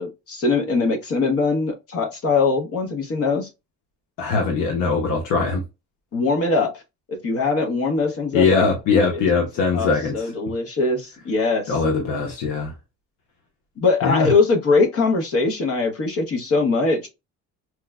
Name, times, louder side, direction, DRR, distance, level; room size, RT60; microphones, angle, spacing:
voice 1, 0.0-3.5 6.1-6.8 7.1-8.6 9.1-9.5 9.7-11.7 13.8-17.1, left 3 dB, 50° left, 0.8 m, -22 dB
voice 2, 4.2-5.6 8.3-10.3 11.7-12.7 14.0-14.3, left 4 dB, 85° left, 0.8 m, -21 dB
4.5 x 2.0 x 2.2 m
cardioid pair, 125°, 31 cm